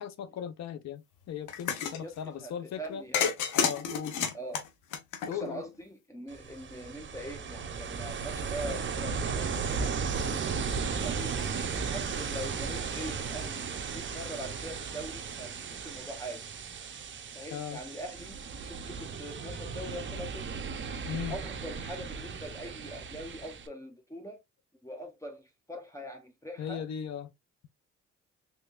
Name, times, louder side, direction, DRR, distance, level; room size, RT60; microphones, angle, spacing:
voice 1, 0.0-3.0 3.5-4.2 5.2-5.6 17.5-17.8 21.1-21.3 26.6-27.3, left 8 dB, 60° left, 0.6 m, -38 dB
sound 1, 1.5-2.0 3.1-5.6, left 7 dB, 90° left, 1.0 m, -30 dB
voice 2, 2.0-3.3 4.3-4.6 5.3-9.9 11.7-16.4 17.3-20.4 21.3-24.4 24.8-26.8, equal, 10° left, 1.2 m, -43 dB
Ocean, 6.3-23.7, right 5 dB, 40° right, 0.7 m, -36 dB
3.7 x 3.3 x 2.4 m
cardioid pair, 90°, 30 cm